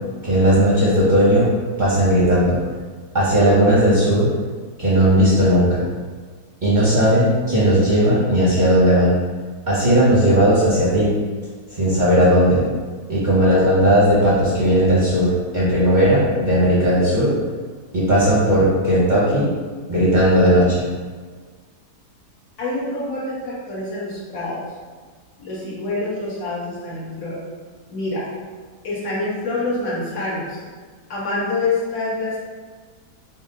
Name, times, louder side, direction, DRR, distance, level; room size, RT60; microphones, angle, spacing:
voice 1, 0.2-1.5 1.8-2.6 3.1-4.3 4.8-5.8 6.6-9.2 9.7-11.1 11.7-12.6 13.1-17.3 17.9-19.5 19.9-20.8, equal, 45° right, -9 dB, 0.6 m, -16 dB
voice 2, 22.6-24.6 25.4-27.4 27.9-28.3 28.8-30.6 31.1-32.4, left 2 dB, 65° left, -8 dB, 1.7 m, -26 dB
4.2 x 2.1 x 3.7 m, 1.5 s
omnidirectional pair, 1.8 m